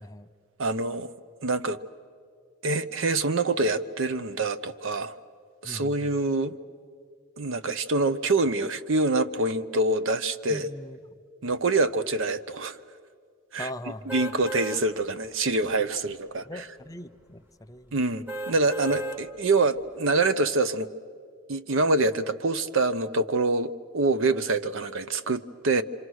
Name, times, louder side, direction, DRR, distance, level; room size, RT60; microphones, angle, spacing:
voice 1, 0.6-1.1 1.4-1.8 2.6-5.1 5.6-6.6 7.4-10.7 11.4-12.8 13.5-13.7 14.1-16.6 17.9-20.9 21.5-25.8, right 2 dB, 60° right, 12 dB, 0.7 m, -25 dB
voice 2, 5.6-6.1 10.5-11.2 13.6-14.1 16.5-17.9, left 1 dB, 15° left, 9 dB, 0.5 m, -40 dB
sound 1, 14.1-14.8 15.3-15.5 18.3-19.2 19.8-19.9, right 2 dB, 10° right, 1.0 m, -34 dB
27.0 x 26.0 x 6.3 m, 2.1 s
head